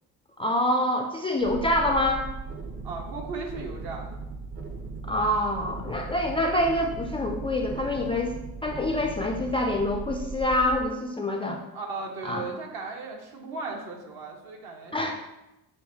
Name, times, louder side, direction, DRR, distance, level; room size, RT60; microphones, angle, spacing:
voice 1, 0.4-2.2 5.1-8.4 8.6-11.6 12.2-12.5 14.9-15.1, left 1 dB, 15° left, 1 dB, 0.3 m, -26 dB
sound 1, 1.4-10.8, right 4 dB, 30° right, 0.7 m, -38 dB
voice 2, 2.8-4.2 11.7-15.1, right 3 dB, 60° right, 1 dB, 1.1 m, -36 dB
6.3 x 2.7 x 2.6 m, 0.95 s
hypercardioid pair, 55°, 43 cm